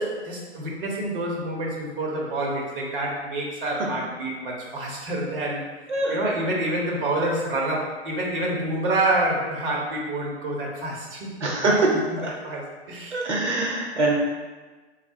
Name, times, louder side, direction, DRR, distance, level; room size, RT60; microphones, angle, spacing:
voice 1, 0.0-5.6 6.1-11.3 11.6-13.2, right 1 dB, 50° right, -2 dB, 1.0 m, -27 dB
voice 2, 11.4-11.9 12.2-12.3 13.1-14.1, right 2 dB, 85° right, -2 dB, 0.9 m, -23 dB
3.3 x 2.2 x 4.3 m, 1.3 s
hypercardioid pair, 130°, 34 cm